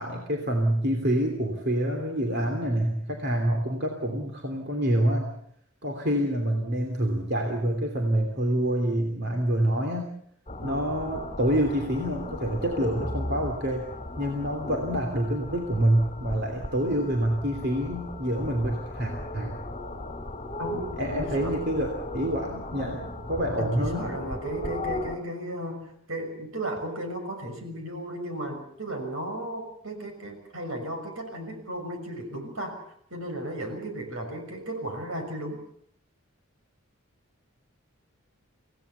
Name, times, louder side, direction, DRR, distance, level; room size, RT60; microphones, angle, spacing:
voice 1, 0.0-5.3 5.8-10.1 10.6-13.9 14.2-19.6 21.0-24.1, right 1 dB, 45° right, 2 dB, 3.1 m, -27 dB
sound 1, 10.5-25.2, left 1 dB, 25° left, 2.1 m, -36 dB
voice 2, 20.6-21.6 23.6-32.8 33.1-35.6, right 1 dB, 70° right, 5 dB, 6.2 m, -35 dB
26.5 x 17.5 x 7.0 m, 0.70 s
head